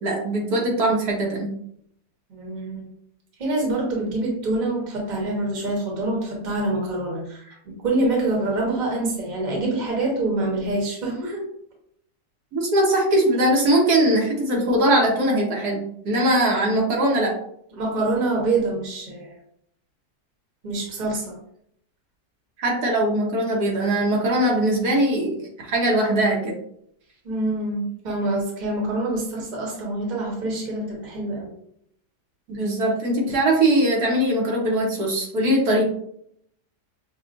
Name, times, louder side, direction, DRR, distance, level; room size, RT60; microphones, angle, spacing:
voice 1, 0.0-1.5 12.5-17.3 22.6-26.5 32.5-35.8, right 1 dB, 75° right, -1 dB, 1.5 m, -21 dB
voice 2, 2.3-2.9 3.4-7.6 7.8-11.5 17.7-19.3 20.6-21.4 27.2-31.5, right 2 dB, 30° right, -1 dB, 1.0 m, -26 dB
6.0 x 2.3 x 2.5 m, 0.70 s
omnidirectional pair, 1.7 m